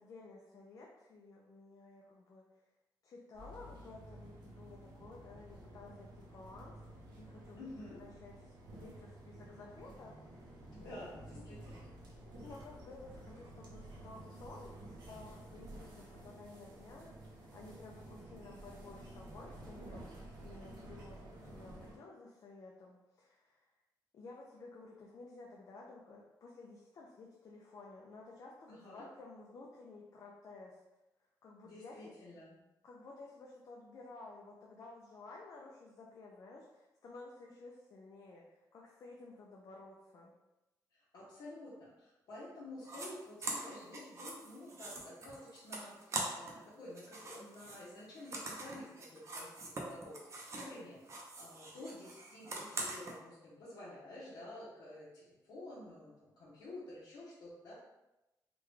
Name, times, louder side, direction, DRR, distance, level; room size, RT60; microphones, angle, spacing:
voice 1, 0.0-2.7 3.0-10.4 10.8-11.8 12.4-20.1 20.4-23.7 24.1-30.8 31.4-32.1 32.8-40.3, left 3 dB, 50° left, -2 dB, 0.5 m, -54 dB
sound 1, 3.3-21.9, right 1 dB, 90° right, 0.8 m, -52 dB
voice 2, 7.5-8.0 10.7-11.9 28.7-29.1 31.6-32.6 40.9-57.7, left 1 dB, 80° left, -9 dB, 0.9 m, -50 dB
sound 2, 42.8-43.1 43.4-46.6 46.9-50.8 51.0-53.1, right 2 dB, 40° right, 0.6 m, -43 dB
3.7 x 2.3 x 3.1 m, 0.97 s
wide cardioid pair, 150°, 7 cm